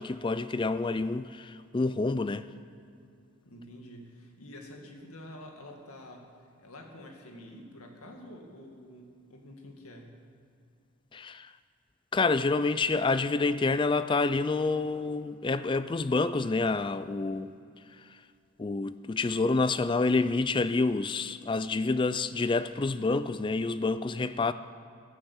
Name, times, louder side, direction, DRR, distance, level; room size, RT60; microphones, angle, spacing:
voice 1, 0.0-2.5 11.1-11.5 12.1-17.5 18.0-18.2 18.6-24.5, left 3 dB, 20° left, 0.3 m, -28 dB
voice 2, 3.4-6.3 6.6-10.2, left 1 dB, 85° left, 2.1 m, -48 dB
15.0 x 10.0 x 7.2 m
head